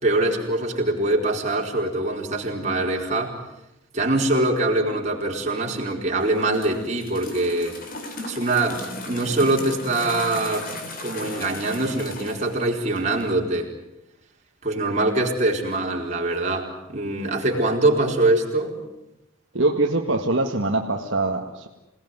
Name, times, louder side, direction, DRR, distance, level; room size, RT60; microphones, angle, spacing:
voice 1, 0.0-3.4 3.9-7.8 8.3-10.7 11.0-13.7 14.6-18.8, right 2 dB, 35° right, 0 dB, 4.4 m, -23 dB
sound 1, 6.2-13.3, left 2 dB, 40° left, 3.6 m, -37 dB
voice 2, 19.5-21.7, right 2 dB, 60° right, 1 dB, 1.8 m, -23 dB
27.5 x 19.0 x 9.5 m, 0.89 s
head